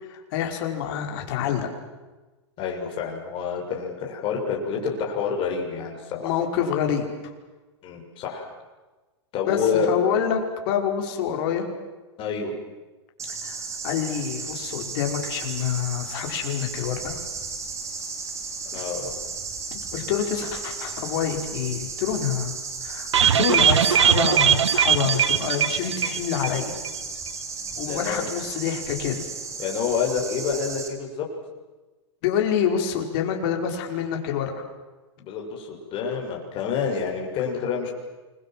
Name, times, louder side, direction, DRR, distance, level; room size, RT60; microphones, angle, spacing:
voice 1, 0.1-1.7 6.2-7.1 9.5-11.7 13.3-13.6 13.8-17.2 18.7-18.8 19.7-22.5 22.8-23.1 23.4-26.8 27.8-29.2 32.2-34.6, left 8 dB, 55° left, 3 dB, 5.2 m, -27 dB
voice 2, 2.6-6.4 7.8-8.5 9.3-9.9 12.2-12.5 18.7-19.1 27.8-28.3 29.6-31.3 35.2-37.9, left 6 dB, 35° left, 0 dB, 6.8 m, -28 dB
sound 1, 13.2-30.9, right 4 dB, 20° right, 3.8 m, -34 dB
sound 2, 23.1-26.6 26.8-26.9 27.3-27.4, right 9 dB, 90° right, 1.2 m, -20 dB
29.0 x 22.5 x 7.7 m, 1.2 s
hypercardioid pair, 130°, 15 cm